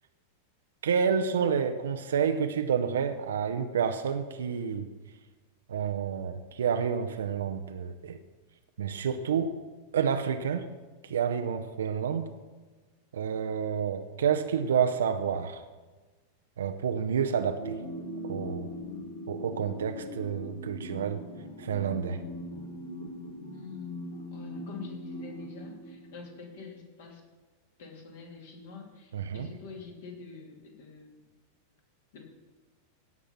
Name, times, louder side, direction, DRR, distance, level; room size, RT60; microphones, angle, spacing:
voice 1, 0.8-4.9 5.7-8.2 8.8-9.5 9.9-10.7 11.0-12.2 13.1-15.6 16.6-17.8 18.2-18.7 19.3-21.2 21.6-22.2 29.1-29.5, right 7 dB, 65° right, 7 dB, 0.6 m, -29 dB
sound 1, 17.6-26.6, equal, 75° left, 2.4 m, -40 dB
voice 2, 23.4-27.2 27.8-31.2 32.1-32.2, left 5 dB, 55° left, 1 dB, 2.6 m, -46 dB
16.5 x 6.0 x 5.8 m, 1.3 s
figure-of-eight pair, 90°, 0 cm